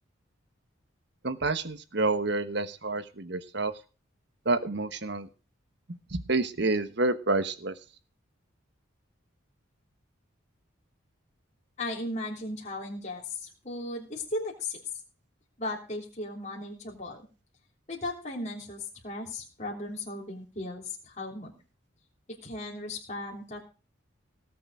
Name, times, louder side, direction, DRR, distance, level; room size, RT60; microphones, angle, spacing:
voice 1, 1.2-3.8 4.4-5.3 5.9-7.8, right 2 dB, 55° right, 13 dB, 1.3 m, -29 dB
voice 2, 11.8-14.8 15.6-17.2 17.9-21.5 22.4-23.6, left 2 dB, 35° left, -1 dB, 3.5 m, -36 dB
18.5 x 7.7 x 5.0 m, 0.35 s
head